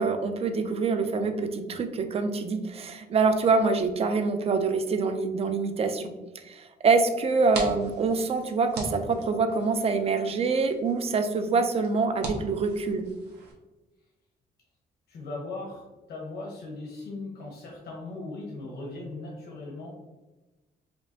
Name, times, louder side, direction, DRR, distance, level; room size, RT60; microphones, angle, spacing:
voice 1, 0.0-6.1 6.5-13.0, right 4 dB, 35° right, 7 dB, 0.4 m, -25 dB
sound 1, 7.2-13.5, right 2 dB, 80° right, 1.0 m, -41 dB
voice 2, 15.1-19.9, left 2 dB, 70° left, -2 dB, 1.0 m, -38 dB
5.1 x 2.6 x 2.7 m, 1.1 s
cardioid pair, 135°, 17 cm